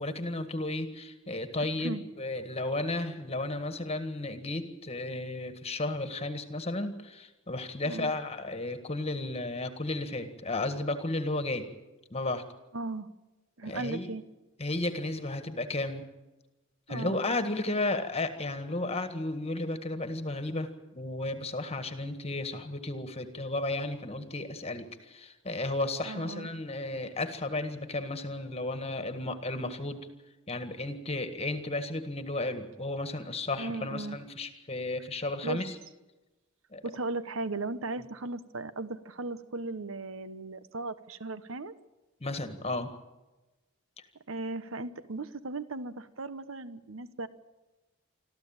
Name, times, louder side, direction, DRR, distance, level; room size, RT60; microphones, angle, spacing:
voice 1, 0.0-11.7 12.1-12.4 13.6-14.1 14.6-16.0 16.9-20.7 20.9-30.1 30.5-35.8 36.7-36.8 42.2-42.9, left 2 dB, 30° left, 8 dB, 1.7 m, -33 dB
voice 2, 12.7-13.1 13.6-14.2 16.9-17.2 26.0-26.5 33.6-34.2 35.4-35.6 36.8-41.7 44.3-47.3, right 3 dB, 70° right, 13 dB, 1.2 m, -37 dB
26.0 x 14.0 x 8.8 m, 1.1 s
head